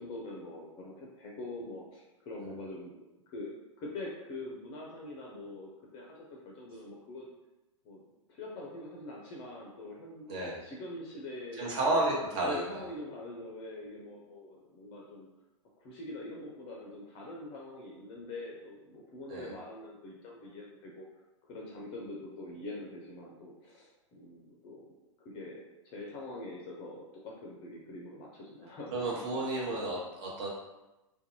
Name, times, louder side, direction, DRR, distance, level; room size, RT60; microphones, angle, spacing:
voice 1, 0.0-7.3 7.8-8.0 8.3-10.3 10.6-11.8 12.4-15.3 15.8-21.1 21.4-24.9 25.2-29.5, left 2 dB, 30° left, -2 dB, 0.5 m, -44 dB
voice 2, 10.3-10.6 11.6-12.8 19.3-19.5 28.9-30.5, right 2 dB, 50° right, -4 dB, 1.0 m, -31 dB
2.5 x 2.2 x 2.8 m, 1.0 s
figure-of-eight pair, 105°, 17 cm